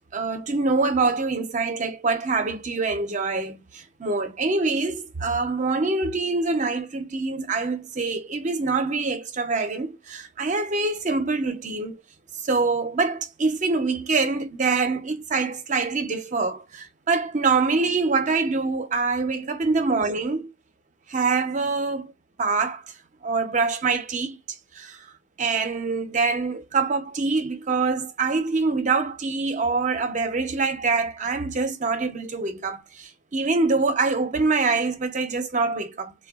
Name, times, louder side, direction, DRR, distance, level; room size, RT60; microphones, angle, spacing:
voice 1, 0.0-12.0 12.4-20.5 21.1-22.1 22.4-22.8 23.2-24.4 24.8-25.0 25.4-36.1, right 4 dB, 45° right, 0.6 m, -25 dB
3.6 x 2.2 x 2.3 m
head